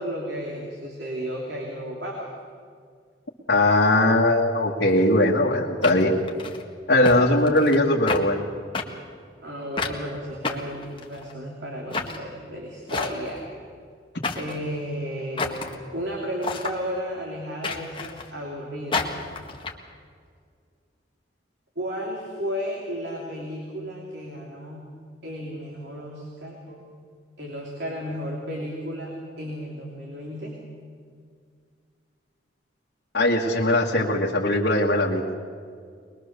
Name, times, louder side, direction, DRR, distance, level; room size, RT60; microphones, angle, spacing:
voice 1, 0.0-2.3 7.0-7.4 9.4-13.5 14.4-19.2 21.7-24.9 25.2-26.8 27.4-30.5, equal, 70° right, -2 dB, 3.3 m, -33 dB
voice 2, 3.5-6.1 6.9-8.4 33.1-35.3, left 1 dB, 65° left, -5 dB, 2.0 m, -20 dB
sound 1, 4.9-5.0 5.8-6.6 7.0-7.2 7.5-8.2 8.7-8.9 9.8-10.0 10.4-11.3 11.9-12.2 12.9-13.4 14.2-14.6 15.4-15.7 16.4-16.8 17.6-18.3 18.9-19.7, left 4 dB, 30° left, 1.6 m, -30 dB
22.5 x 21.5 x 6.9 m, 2.1 s
head